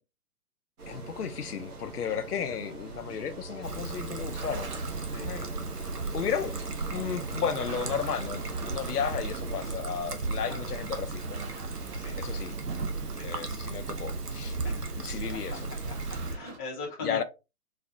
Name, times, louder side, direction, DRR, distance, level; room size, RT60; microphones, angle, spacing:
sound 1, 0.8-9.7, right 3 dB, 70° right, 1.3 m, -43 dB
voice 1, 0.9-4.8 5.1-5.5 6.1-6.5 6.9-11.4 12.2-12.6 13.2-14.6 15.0-15.6 17.0-17.2, left 7 dB, 80° left, 0.6 m, -34 dB
Trickle dribble, 3.6-16.4, right 3 dB, 90° right, 0.8 m, -35 dB
sound 2, 4.3-14.1 14.3-16.6, right 4 dB, 45° right, 1.1 m, -48 dB
voice 2, 13.1-13.5 14.6-15.1 16.3-17.2, left 4 dB, 15° left, 0.5 m, -40 dB
4.0 x 2.4 x 2.6 m
figure-of-eight pair, 125°, 46 cm